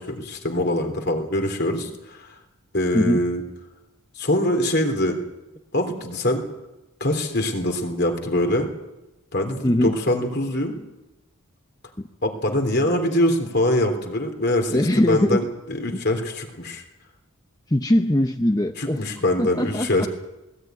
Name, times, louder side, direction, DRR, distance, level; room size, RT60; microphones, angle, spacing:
voice 1, 0.0-2.4 2.7-3.4 4.2-5.2 5.7-6.4 7.0-8.7 9.3-10.8 12.2-16.8 18.8-20.1, left 1 dB, 50° left, 4 dB, 3.4 m, -23 dB
voice 2, 9.6-9.9 12.0-12.1 14.7-15.4 15.9-16.0 17.7-19.0 19.4-20.1, left 1 dB, 15° left, 6 dB, 0.7 m, -21 dB
19.5 x 18.5 x 9.4 m, 1.0 s
head